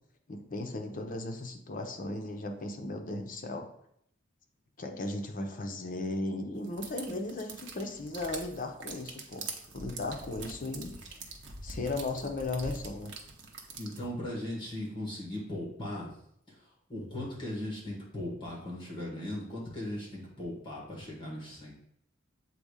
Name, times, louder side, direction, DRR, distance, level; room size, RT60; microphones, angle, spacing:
voice 1, 0.3-3.7 4.8-9.5 9.7-11.2 11.6-13.1, left 2 dB, 45° left, 4 dB, 0.7 m, -36 dB
sound 1, 6.6-14.1, right 3 dB, 65° right, 0.9 m, -44 dB
voice 2, 13.8-16.2 16.5-21.7, left 1 dB, 25° left, -4 dB, 1.8 m, -38 dB
7.7 x 2.7 x 4.9 m, 0.71 s
head